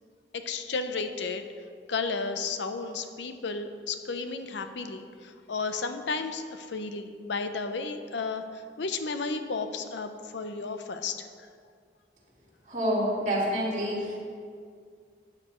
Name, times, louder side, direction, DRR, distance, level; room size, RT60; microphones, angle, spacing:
voice 1, 0.3-1.4 1.9-8.4 8.8-11.2, left 4 dB, 80° left, 8 dB, 0.7 m, -33 dB
voice 2, 12.7-14.2, equal, 45° right, -5 dB, 2.6 m, -27 dB
12.5 x 9.1 x 3.1 m, 2.1 s
head